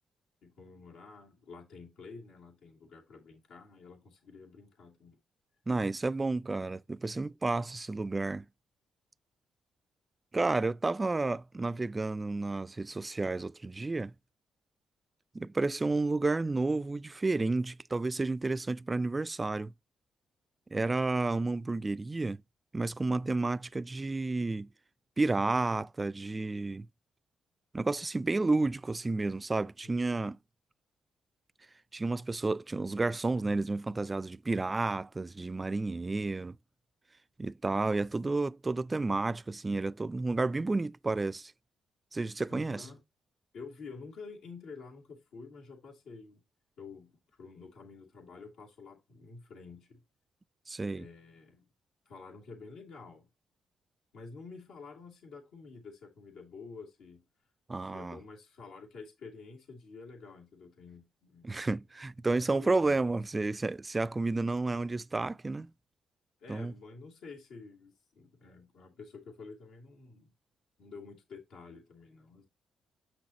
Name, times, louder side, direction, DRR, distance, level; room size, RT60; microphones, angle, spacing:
voice 1, 0.4-5.2 42.5-43.0 43.5-46.4 46.8-50.0 50.9-51.7 52.0-53.3 54.1-57.3 57.8-61.5 62.5-63.0 66.4-70.3 70.8-72.5, left 4 dB, 85° left, 2.8 m, -49 dB
voice 2, 5.7-8.5 10.3-14.1 15.3-19.7 20.7-22.4 22.7-24.7 25.2-26.9 27.7-30.4 31.9-36.6 37.4-41.5 42.1-42.9 50.7-51.1 57.7-58.2 61.4-65.7 66.5-66.7, right 3 dB, 25° right, 0.3 m, -31 dB
7.9 x 6.1 x 2.9 m
cardioid pair, 65°, 0 cm